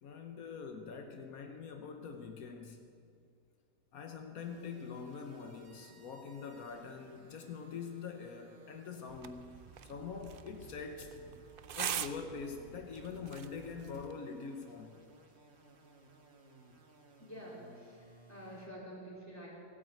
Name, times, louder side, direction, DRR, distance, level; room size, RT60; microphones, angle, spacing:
voice 1, 0.0-2.8 3.9-11.1 11.7-15.0, left 5 dB, 80° left, 4 dB, 1.5 m, -44 dB
sound 1, 4.4-18.7, right 3 dB, 50° right, 1.8 m, -61 dB
sound 2, 9.1-14.1, right 9 dB, 70° right, 0.5 m, -43 dB
voice 2, 17.2-19.5, equal, 10° left, -6 dB, 3.9 m, -48 dB
16.5 x 9.1 x 7.8 m, 2.3 s
omnidirectional pair, 1.5 m